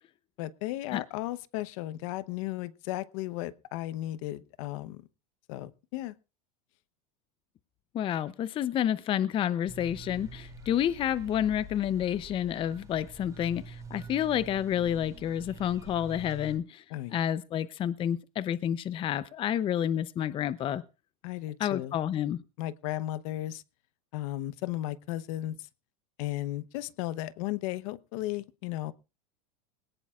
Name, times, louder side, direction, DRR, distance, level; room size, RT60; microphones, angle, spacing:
voice 1, 0.4-5.0 5.5-6.1 16.9-17.1 21.2-21.9 22.6-23.6 24.1-25.5 26.2-28.9, left 15 dB, 60° left, 16 dB, 0.9 m, -35 dB
voice 2, 7.9-16.8 17.1-20.8 21.6-22.4, left 10 dB, 30° left, 16 dB, 0.6 m, -29 dB
sound 1, 9.7-16.6, right 2 dB, 15° right, 3.2 m, -46 dB
20.5 x 18.0 x 2.4 m, 0.32 s
supercardioid pair, 130°, 19 cm